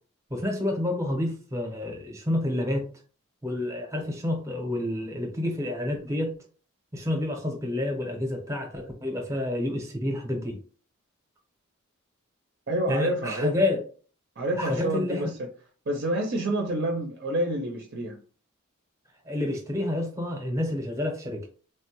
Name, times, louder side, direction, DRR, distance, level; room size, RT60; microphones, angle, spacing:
voice 1, 0.3-2.9 3.4-6.3 6.9-10.6 12.9-13.8 14.6-15.3 19.2-21.5, left 1 dB, 15° right, 0.7 m, -29 dB
voice 2, 12.7-13.5 14.4-15.3 15.9-18.2, right 1 dB, 50° right, 0.4 m, -28 dB
3.2 x 2.1 x 2.9 m
head